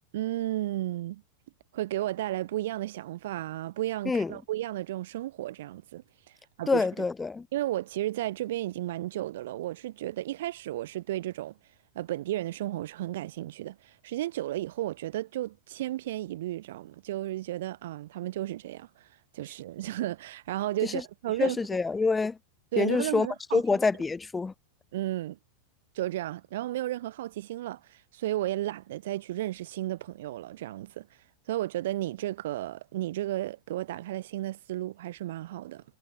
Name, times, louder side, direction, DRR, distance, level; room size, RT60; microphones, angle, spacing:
voice 1, 0.1-1.2 1.7-6.0 6.6-6.8 7.5-11.5 11.9-19.1 19.3-21.6 22.7-23.6 24.9-25.4 25.9-31.1 31.5-35.8, right 14 dB, 55° right, 3.4 m, -33 dB
voice 2, 6.7-7.5 20.8-20.9 21.4-22.4 22.8-23.3 23.5-24.5, left 4 dB, 10° left, 0.8 m, -26 dB
figure-of-eight pair, 90°, 0 cm